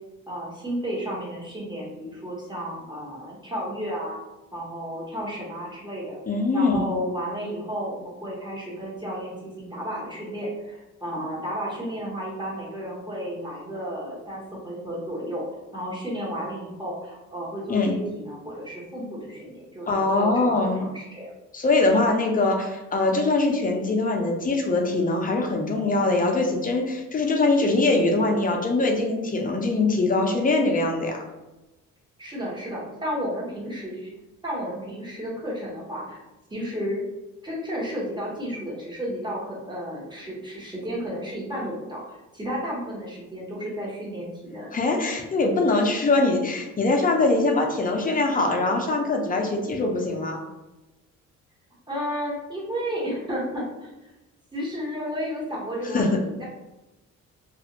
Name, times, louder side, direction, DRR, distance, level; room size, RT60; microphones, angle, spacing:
voice 1, 0.3-4.2 4.5-6.2 6.5-20.4 20.7-21.3 32.2-34.1 34.4-36.2 36.5-37.0 37.4-44.7 51.9-53.9 54.5-56.4, equal, 15° right, -5 dB, 1.1 m, -32 dB
voice 2, 6.3-6.9 17.7-18.0 19.9-20.9 21.5-31.2 44.7-50.4 55.9-56.1, left 2 dB, 30° left, 1 dB, 0.6 m, -22 dB
2.5 x 2.4 x 2.8 m, 1.0 s
cardioid pair, 90°, 30 cm